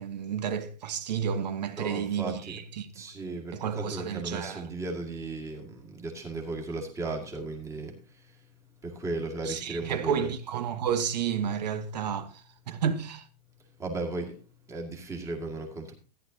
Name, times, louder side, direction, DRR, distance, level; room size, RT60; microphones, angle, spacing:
voice 1, 0.0-2.9 3.5-4.6 9.5-13.3, right 8 dB, 80° right, 1.4 m, -31 dB
voice 2, 1.8-2.6 2.9-8.5 8.8-10.3 13.6-14.4 14.7-15.9, right 2 dB, 15° right, 2.0 m, -36 dB
14.0 x 10.5 x 2.8 m
supercardioid pair, 155°, 21 cm